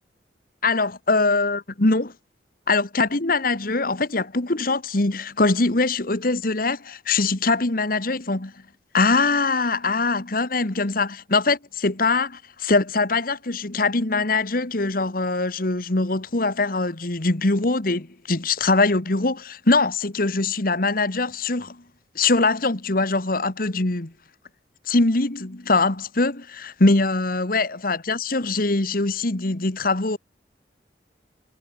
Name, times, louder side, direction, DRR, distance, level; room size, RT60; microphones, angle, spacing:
voice 1, 0.6-2.1 2.7-8.5 8.9-21.8 22.1-24.1 24.9-30.2, left 3 dB, 50° left, 1.6 m, -22 dB
head